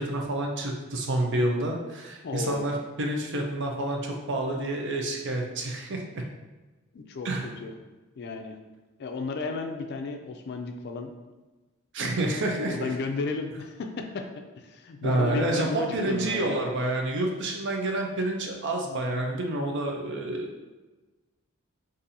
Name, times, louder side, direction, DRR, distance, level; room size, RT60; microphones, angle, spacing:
voice 1, 0.0-6.2 7.2-7.5 11.9-12.9 15.0-20.7, right 1 dB, 55° right, 1 dB, 0.5 m, -29 dB
voice 2, 2.2-2.7 6.9-7.3 7.6-7.7 8.2-8.6 9.0-11.1 12.7-14.3 14.5-16.7, left 4 dB, 50° left, 5 dB, 0.4 m, -33 dB
4.1 x 2.6 x 2.6 m, 1.2 s
head